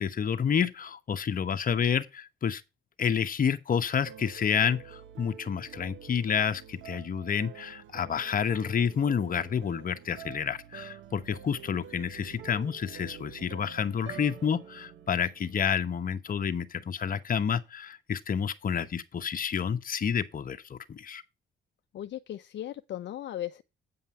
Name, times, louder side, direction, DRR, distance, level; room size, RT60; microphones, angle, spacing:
voice 1, 0.0-2.6 3.0-21.2, left 7 dB, 45° left, 1.1 m, -29 dB
sound 1, 4.1-16.2, right 9 dB, 75° right, 1.1 m, -48 dB
voice 2, 21.9-23.6, left 12 dB, 65° left, 0.6 m, -37 dB
8.8 x 5.5 x 5.4 m
cardioid pair, 90°, 20 cm